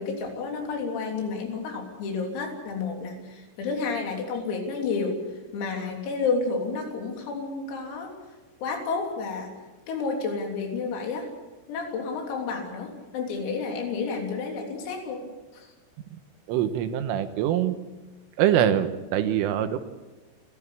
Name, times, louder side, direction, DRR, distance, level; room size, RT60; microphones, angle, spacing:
voice 1, 0.0-5.2 5.5-8.1 8.6-9.5 9.9-11.3 11.7-15.3 15.5-15.7, left 4 dB, 90° left, 2 dB, 6.1 m, -30 dB
voice 2, 16.5-17.8 18.4-19.8, right 10 dB, 80° right, 9 dB, 3.6 m, -24 dB
29.0 x 13.0 x 8.5 m, 1.2 s
omnidirectional pair, 5.9 m